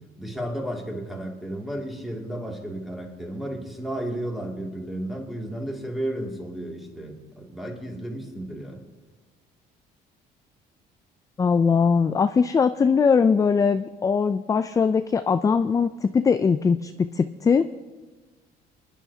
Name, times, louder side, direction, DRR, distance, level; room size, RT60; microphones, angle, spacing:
voice 1, 0.2-8.8, right 1 dB, ahead, 0 dB, 2.3 m, -33 dB
voice 2, 11.4-17.7, left 5 dB, 20° left, 11 dB, 0.3 m, -21 dB
24.0 x 10.5 x 2.8 m, 1.3 s
cardioid pair, 110°, 17 cm